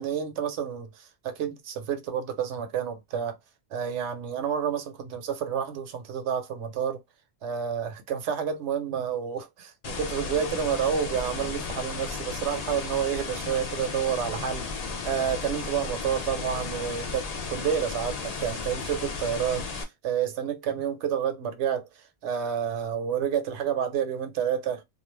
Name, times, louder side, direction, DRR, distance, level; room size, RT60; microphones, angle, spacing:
voice 1, 0.0-3.4 3.7-7.0 7.4-21.9 22.2-24.8, right 8 dB, 65° right, 0.9 m, -29 dB
sound 1, 9.8-19.8, left 4 dB, 55° left, 0.4 m, -34 dB
2.4 x 2.3 x 3.2 m
omnidirectional pair, 1.3 m